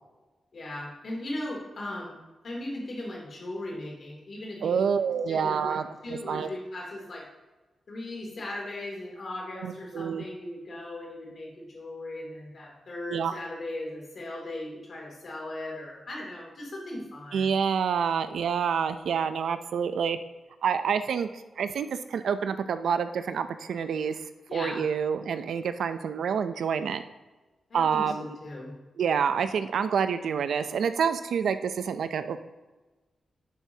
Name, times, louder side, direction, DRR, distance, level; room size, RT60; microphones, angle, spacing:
voice 1, 0.5-2.1 2.4-4.8 5.3-5.8 6.0-7.2 7.9-17.5 24.5-24.8 27.7-28.7, left 1 dB, 50° left, -2 dB, 2.6 m, -38 dB
voice 2, 4.6-6.5 9.6-10.2 13.1-13.3 17.3-20.2 20.6-21.3 21.6-27.0 27.7-28.4 29.0-32.4, right 7 dB, 90° right, 10 dB, 0.5 m, -28 dB
11.0 x 6.8 x 2.8 m, 1.2 s
wide cardioid pair, 145°, 0 cm